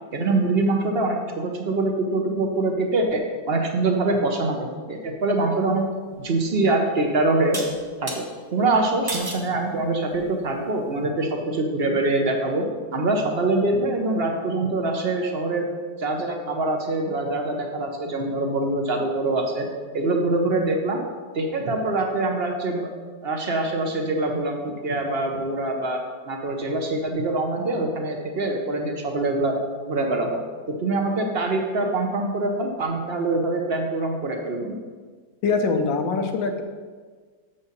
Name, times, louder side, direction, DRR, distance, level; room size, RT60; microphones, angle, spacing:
voice 1, 0.1-5.8 6.2-7.6 8.0-8.2 8.5-12.7 12.9-15.7 16.0-19.7 19.9-21.0 21.3-22.9 23.2-26.0 26.2-29.6 29.9-30.4 30.7-34.8, right 2 dB, 45° right, 3 dB, 0.8 m, -24 dB
sound 1, 6.2-6.3 7.5-8.2 9.1-9.5 10.1-10.5, right 1 dB, 15° right, 1.0 m, -32 dB
voice 2, 35.4-36.6, left 4 dB, 80° left, 6 dB, 1.5 m, -23 dB
6.9 x 5.5 x 6.6 m, 1.5 s
omnidirectional pair, 2.0 m